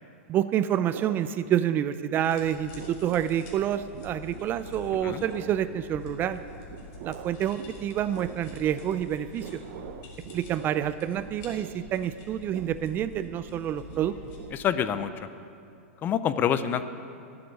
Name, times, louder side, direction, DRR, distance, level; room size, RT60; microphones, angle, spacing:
voice 1, 0.3-6.4 7.0-9.6 10.3-14.1, right 10 dB, 25° right, 13 dB, 0.4 m, -28 dB
sound 1, 0.9-2.2 2.4-15.6, right 8 dB, 50° right, 0.8 m, -46 dB
sound 2, 2.2-14.4, left 2 dB, 45° left, 2.9 m, -47 dB
voice 2, 14.5-15.1 16.0-16.8, left 9 dB, 25° left, 12 dB, 0.5 m, -26 dB
12.5 x 7.9 x 9.0 m, 2.5 s
hypercardioid pair, 135°, 7 cm